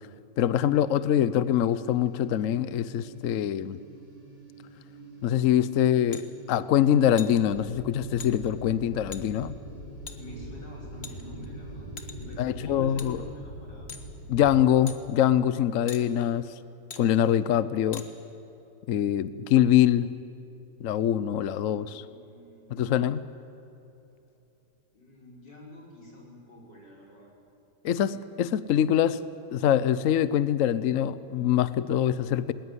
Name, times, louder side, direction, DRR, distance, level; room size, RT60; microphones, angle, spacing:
voice 1, 0.4-3.8 5.2-9.6 12.4-13.2 14.3-16.5 17.0-18.0 18.9-20.1 20.8-22.0 22.7-23.2 27.8-29.2 29.5-32.5, left 10 dB, 60° left, 16 dB, 0.9 m, -24 dB
sound 1, 1.8-12.7, right 2 dB, 40° right, 4.2 m, -50 dB
sound 2, 6.1-6.3 7.2-7.4 8.2-8.3 9.1-9.2 10.1-10.2 11.0-11.5 12.0-12.3 13.0-13.1 13.9-14.1 14.9-15.0 15.9-16.0 16.9-17.0 17.9-18.1, left 5 dB, 40° left, 1.6 m, -41 dB
sound 3, 7.4-14.6, equal, 90° right, 7.0 m, -42 dB
voice 2, 10.1-11.9 12.2-13.9 21.6-23.0 24.9-27.3, left 1 dB, 85° left, -2 dB, 5.6 m, -48 dB
20.0 x 19.5 x 9.6 m, 2.9 s
omnidirectional pair, 1.9 m